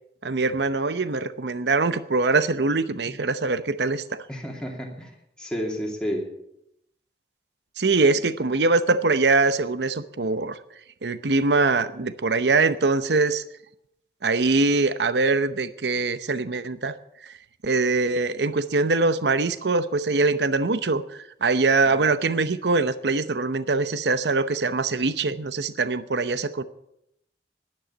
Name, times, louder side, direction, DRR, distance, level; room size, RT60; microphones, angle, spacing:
voice 1, 0.2-4.2 7.8-10.6 11.0-13.4 14.2-16.9 17.6-21.0 21.4-26.6, right 3 dB, 75° right, 13 dB, 0.8 m, -23 dB
voice 2, 4.3-5.1 5.4-6.3 21.8-22.1, equal, 5° left, -1 dB, 2.5 m, -31 dB
12.0 x 10.5 x 8.3 m, 0.79 s
head